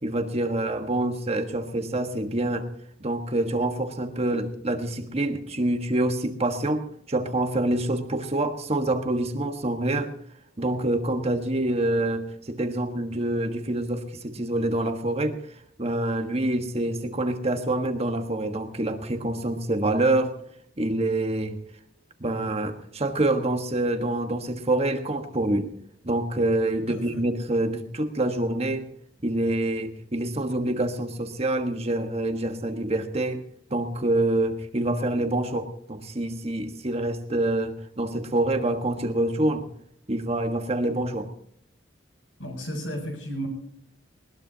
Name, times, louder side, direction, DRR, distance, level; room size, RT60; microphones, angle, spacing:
voice 1, 0.0-2.7 3.0-10.1 10.6-15.4 15.8-20.3 20.8-21.6 22.2-25.7 26.0-28.8 29.2-33.4 33.7-39.7 40.1-41.3, right 1 dB, 35° right, 6 dB, 1.4 m, -26 dB
voice 2, 26.9-27.2 42.4-43.5, equal, 85° left, 3 dB, 7.5 m, -33 dB
20.5 x 20.0 x 2.8 m, 0.65 s
head